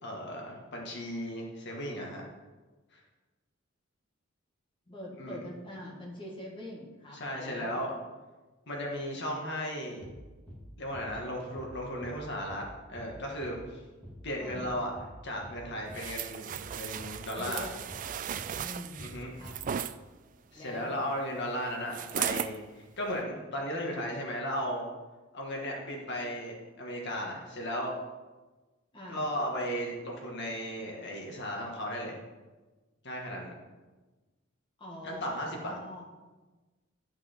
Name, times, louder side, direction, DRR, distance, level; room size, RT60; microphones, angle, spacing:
voice 1, 0.0-2.2 2.9-3.0 5.2-5.4 7.1-7.9 8.7-10.0 10.8-13.8 14.2-14.9 15.2-17.7 19.0-19.3 20.5-24.8 25.3-27.9 29.1-32.1 33.0-33.6 35.0-35.8, equal, 60° left, -1 dB, 1.7 m, -36 dB
voice 2, 4.9-7.8 14.4-14.8 17.4-17.7 18.5-19.1 19.4-19.6 20.5-21.0 28.9-29.3 34.8-36.1, left 1 dB, 25° left, -2 dB, 1.8 m, -44 dB
sound 1, 10.0-10.2 10.5-10.7 10.9-11.1 11.6-11.8 12.0-12.2 12.5-12.7 12.9-13.1 13.4-13.6 14.0-14.2 14.5-14.7 15.0-15.2 15.4-15.6 15.9-16.1 16.5-16.7 17.0-17.2 17.4-17.6 17.9-18.1 18.4-18.6 19.0-19.2 19.4-19.6, equal, 5° left, 2.2 m, -47 dB
sound 2, 15.9-19.9 21.9-22.6 23.1-23.2, right 9 dB, 40° right, 0.3 m, -36 dB
12.0 x 6.1 x 4.5 m, 1.2 s
head